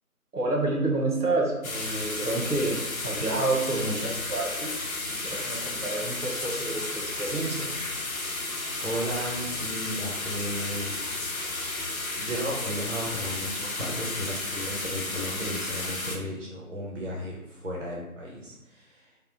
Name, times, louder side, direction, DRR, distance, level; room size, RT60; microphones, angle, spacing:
voice 1, 0.3-2.8 3.0-4.8 5.0-7.7, right 2 dB, 85° right, -2 dB, 1.3 m, -29 dB
sound 1, 1.6-16.2, left 2 dB, 65° left, 0.7 m, -33 dB
voice 2, 8.8-11.0 12.1-19.1, equal, 55° right, -4 dB, 0.8 m, -34 dB
3.5 x 2.1 x 3.9 m, 0.95 s
figure-of-eight pair, 180°, 46 cm